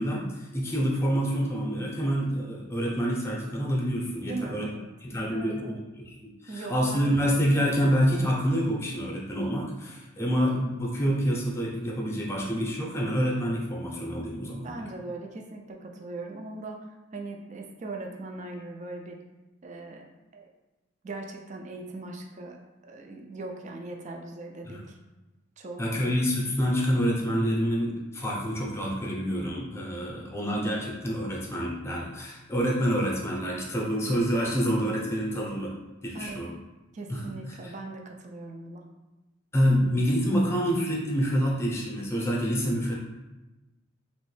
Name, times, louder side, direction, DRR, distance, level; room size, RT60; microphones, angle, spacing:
voice 1, 0.0-4.7 5.0-14.8 24.6-24.8 25.8-35.7 36.0-36.5 37.1-37.3 39.5-42.9, equal, 15° left, -3 dB, 0.6 m, -27 dB
voice 2, 4.2-4.9 5.3-5.9 6.5-7.2 14.5-19.2 19.6-20.0 20.3-20.5 21.0-25.0 25.6-26.0 36.1-36.4 36.9-38.9, right 2 dB, 35° right, 2 dB, 0.4 m, -40 dB
3.1 x 3.0 x 3.2 m, 1.1 s
head